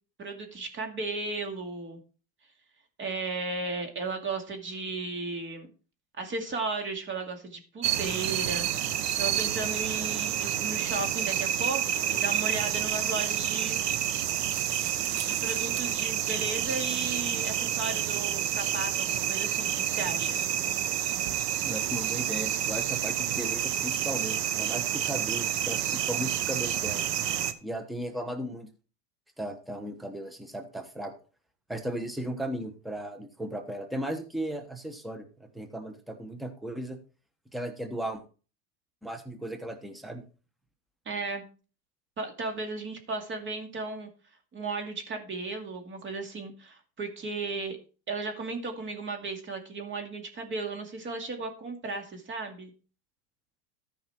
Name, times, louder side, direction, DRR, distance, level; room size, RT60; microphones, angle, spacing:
voice 1, 0.2-2.0 3.0-5.7 6.2-13.8 15.2-20.4 41.1-41.5 42.2-44.1 44.5-47.8 48.1-52.7, right 3 dB, 25° right, 4 dB, 2.4 m, -35 dB
sound 1, 7.8-27.5, right 10 dB, 85° right, 1.3 m, -29 dB
voice 2, 21.6-27.0 27.6-28.7 29.4-31.1 31.7-37.0 37.5-38.2 39.0-40.2, right 1 dB, ahead, 6 dB, 1.1 m, -36 dB
13.5 x 5.7 x 4.6 m, 0.37 s
supercardioid pair, 140°, 47 cm